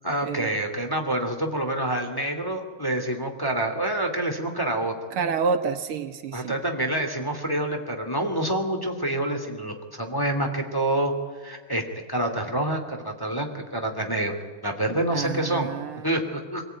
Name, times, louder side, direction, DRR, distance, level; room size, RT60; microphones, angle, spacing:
voice 1, 0.0-4.9 6.3-11.1 11.4-11.8 12.1-15.7 16.0-16.6, right 1 dB, 10° left, 3 dB, 2.4 m, -27 dB
voice 2, 5.1-6.5 15.1-16.1, right 5 dB, 80° right, 8 dB, 2.2 m, -28 dB
24.5 x 18.5 x 9.2 m, 1.5 s
omnidirectional pair, 2.4 m